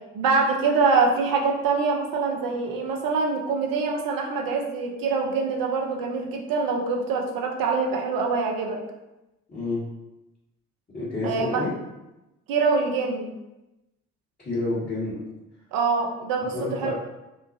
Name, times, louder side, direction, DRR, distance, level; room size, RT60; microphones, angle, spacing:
voice 1, 0.1-8.8 11.2-11.6 12.5-13.3 15.7-16.9, right 4 dB, 60° right, 1 dB, 0.7 m, -24 dB
voice 2, 9.5-9.9 10.9-11.7 14.4-15.2 16.5-16.9, left 2 dB, 25° left, -13 dB, 1.4 m, -29 dB
2.9 x 2.2 x 2.6 m, 0.97 s
hypercardioid pair, 45°, 39 cm